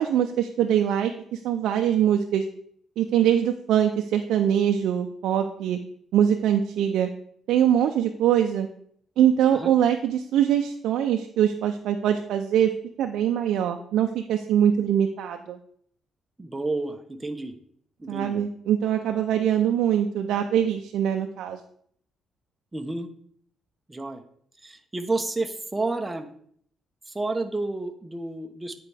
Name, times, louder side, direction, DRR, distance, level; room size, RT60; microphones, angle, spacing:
voice 1, 0.0-2.4 3.0-5.8 6.1-7.1 7.5-8.7 9.2-12.7 13.0-15.6 18.1-21.6, right 9 dB, 80° right, 4 dB, 0.4 m, -23 dB
voice 2, 16.4-17.5 18.0-18.4 22.7-23.1 23.9-24.2 24.6-26.3 27.1-28.8, right 2 dB, 15° right, 6 dB, 0.8 m, -30 dB
9.6 x 4.6 x 3.3 m, 0.63 s
cardioid pair, 90°, 0 cm